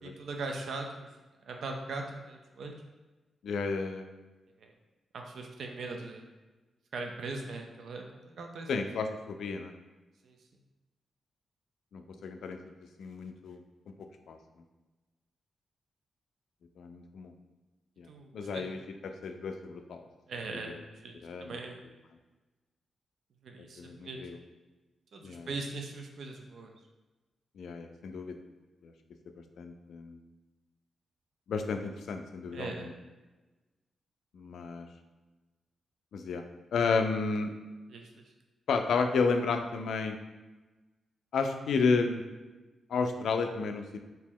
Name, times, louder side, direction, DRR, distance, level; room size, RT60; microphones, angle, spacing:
voice 1, 0.0-1.1 1.4-2.7 5.1-6.2 6.9-8.7 10.2-10.4 18.1-18.6 20.3-21.1 21.4-21.8 23.4-24.2 25.1-26.7 32.5-32.9 37.9-38.2, right 3 dB, 75° right, 3 dB, 0.4 m, -40 dB
voice 2, 3.4-4.0 8.7-9.7 11.9-12.6 13.0-13.6 14.3-14.4 16.8-17.3 18.0-18.1 18.3-20.0 20.5-20.8 21.2-21.6 23.8-24.4 25.2-25.6 27.6-28.4 28.8-28.9 29.6-30.2 31.5-32.9 34.3-34.9 36.1-36.4 36.7-37.5 38.7-40.2 41.3-42.2 42.9-43.8, left 4 dB, 80° left, 6 dB, 0.3 m, -32 dB
3.0 x 2.7 x 3.6 m, 1.2 s
cardioid pair, 100°, 0 cm